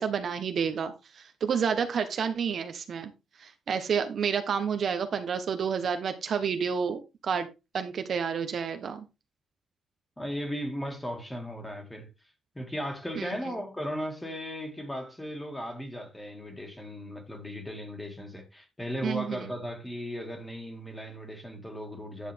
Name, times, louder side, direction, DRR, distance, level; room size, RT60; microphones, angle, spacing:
voice 1, 0.0-3.1 3.4-7.5 7.7-9.0 13.2-13.4 19.0-19.5, right 6 dB, 45° right, 1.1 m, -30 dB
voice 2, 10.2-12.1 12.5-22.3, equal, 10° left, 2.2 m, -36 dB
10.5 x 7.3 x 3.5 m
cardioid pair, 165°, 0 cm